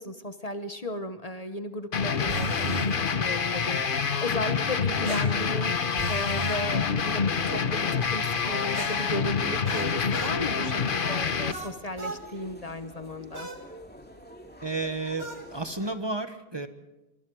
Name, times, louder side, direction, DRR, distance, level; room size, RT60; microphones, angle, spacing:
voice 1, 0.0-13.5, left 1 dB, 40° left, 9 dB, 1.2 m, -35 dB
sound 1, 1.9-11.5, left 5 dB, 55° left, 1.2 m, -27 dB
Bap Vocals, 2.3-2.9 5.1-6.6 8.7-10.4 11.5-12.2 13.3-13.6 15.2-15.5, right 1 dB, 85° right, 2.5 m, -37 dB
sound 2, 7.3-15.9, equal, 10° left, 2.5 m, -48 dB
voice 2, 14.6-16.7, right 3 dB, 25° right, 8 dB, 1.3 m, -32 dB
25.5 x 23.0 x 4.8 m, 1.0 s
omnidirectional pair, 1.1 m